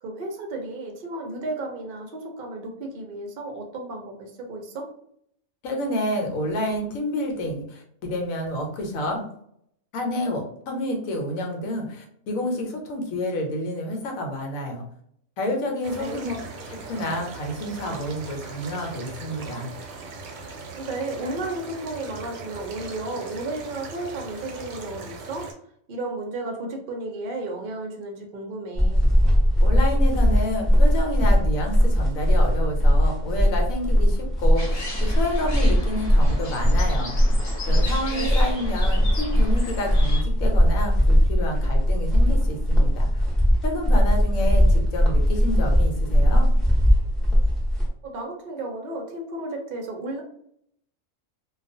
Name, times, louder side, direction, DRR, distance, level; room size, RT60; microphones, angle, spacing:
voice 1, 0.0-4.9 16.0-16.2 20.8-25.5 25.9-29.0 38.1-38.4 48.0-50.2, right 2 dB, 55° right, 2 dB, 0.6 m, -33 dB
voice 2, 5.6-9.2 9.9-14.8 15.4-16.3 16.7-19.7 29.6-37.1 37.7-43.3 43.6-46.5, left 1 dB, 80° left, 2 dB, 1.1 m, -29 dB
sound 1, 15.8-25.5, right 4 dB, 90° right, 1.0 m, -39 dB
sound 2, 28.8-47.9, equal, ahead, 0.5 m, -20 dB
sound 3, 34.5-40.2, left 2 dB, 45° left, 0.9 m, -36 dB
2.3 x 2.3 x 2.5 m, 0.68 s
omnidirectional pair, 1.4 m